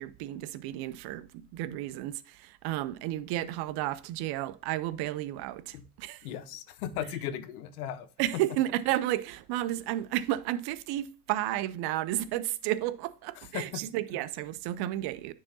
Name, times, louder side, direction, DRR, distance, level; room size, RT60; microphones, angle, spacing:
voice 1, 0.0-6.3 8.2-15.3, right 14 dB, 60° right, 0.7 m, -32 dB
voice 2, 6.2-8.1 13.4-13.8, left 10 dB, 80° left, 0.8 m, -37 dB
9.5 x 4.7 x 2.8 m
hypercardioid pair, 70°, 43 cm